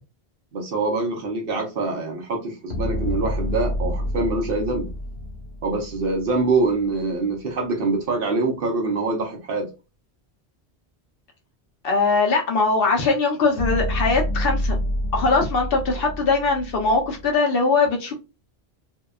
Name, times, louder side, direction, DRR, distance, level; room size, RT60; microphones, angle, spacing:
voice 1, 0.5-4.9 5.6-9.7, right 3 dB, 60° right, 0.8 m, -24 dB
sound 1, 2.7-7.0 13.6-17.3, left 1 dB, 80° left, 1.1 m, -28 dB
voice 2, 11.8-14.8 15.1-18.1, left 4 dB, 60° left, 0.8 m, -21 dB
2.7 x 2.2 x 2.2 m
omnidirectional pair, 1.1 m